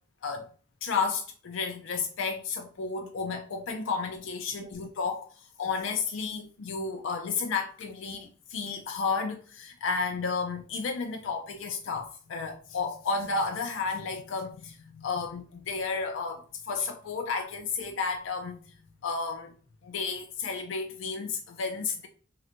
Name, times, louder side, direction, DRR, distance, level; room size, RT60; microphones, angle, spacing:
voice 1, 0.8-18.7 19.0-19.5 19.8-22.1, left 4 dB, 80° left, 0.4 m, -32 dB
3.7 x 2.1 x 2.9 m
head